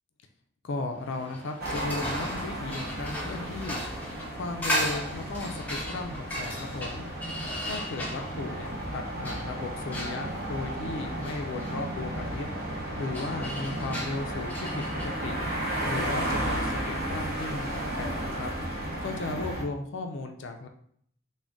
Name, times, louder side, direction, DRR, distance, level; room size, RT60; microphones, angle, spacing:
voice 1, 0.6-3.9 4.3-7.1 7.6-12.5 13.0-15.4 15.9-18.5 19.0-20.7, left 3 dB, 55° left, 5 dB, 0.4 m, -36 dB
sound 1, 1.0-18.4, equal, 5° left, 0.5 m, -38 dB
sound 2, 1.6-19.6, right 1 dB, 45° right, 0.7 m, -34 dB
3.7 x 2.2 x 3.5 m, 0.64 s
head